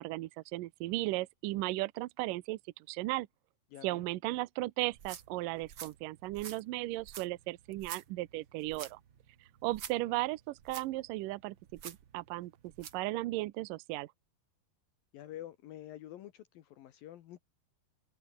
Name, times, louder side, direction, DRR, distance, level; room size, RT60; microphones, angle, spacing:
voice 1, 0.0-2.6 2.9-3.3 3.8-9.0 9.6-11.6 11.8-12.5 12.8-14.1, right 19 dB, 75° right, 2.2 m, -36 dB
voice 2, 3.7-4.0 10.0-10.2 15.1-17.4, left 12 dB, 75° left, 3.0 m, -48 dB
sound 1, 4.9-13.1, right 8 dB, 50° right, 1.4 m, -50 dB
omnidirectional pair, 4.3 m